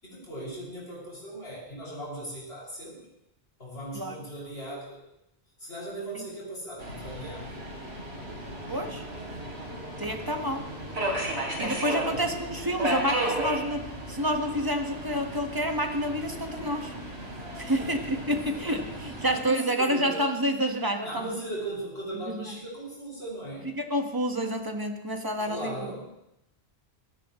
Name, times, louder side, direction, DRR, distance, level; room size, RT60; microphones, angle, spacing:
voice 1, 0.0-3.0 3.6-5.0 5.6-7.5 12.1-12.4 17.6-18.7 19.3-20.3 21.0-23.7 25.4-26.1, right 1 dB, 75° left, -6 dB, 6.8 m, -38 dB
Subway metro underground, 6.8-19.4, right 1 dB, 80° right, 4.0 m, -35 dB
voice 2, 8.7-9.0 10.0-10.6 11.6-16.9 17.6-21.3 23.8-25.7, equal, 20° right, 4 dB, 1.6 m, -28 dB
25.5 x 16.5 x 3.2 m, 0.81 s
omnidirectional pair, 1.1 m